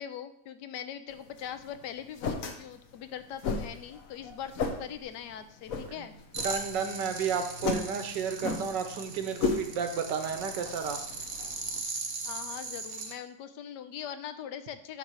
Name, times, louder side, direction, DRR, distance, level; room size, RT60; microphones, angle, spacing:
voice 1, 0.0-6.2 12.2-15.0, left 9 dB, 80° left, 10 dB, 1.2 m, -41 dB
sound 1, 1.1-11.8, left 4 dB, 55° left, 1.2 m, -37 dB
sound 2, 6.3-13.1, right 3 dB, 45° right, 0.9 m, -39 dB
voice 2, 6.4-11.0, right 6 dB, 85° right, 6 dB, 1.6 m, -32 dB
9.4 x 3.3 x 6.2 m, 0.75 s
omnidirectional pair, 1.9 m